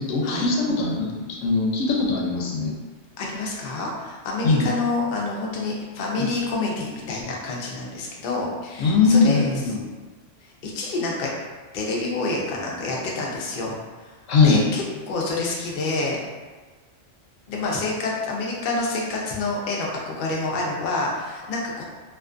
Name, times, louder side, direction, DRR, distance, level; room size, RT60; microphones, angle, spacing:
voice 1, 0.0-2.7 4.4-4.7 6.2-6.3 8.8-9.8 14.3-14.6, left 4 dB, 85° left, -2 dB, 0.9 m, -20 dB
voice 2, 3.2-9.4 10.6-11.3 11.7-13.8 14.4-16.2 17.5-21.8, left 3 dB, 60° left, -2 dB, 0.6 m, -28 dB
2.4 x 2.4 x 2.4 m, 1.3 s
omnidirectional pair, 1.3 m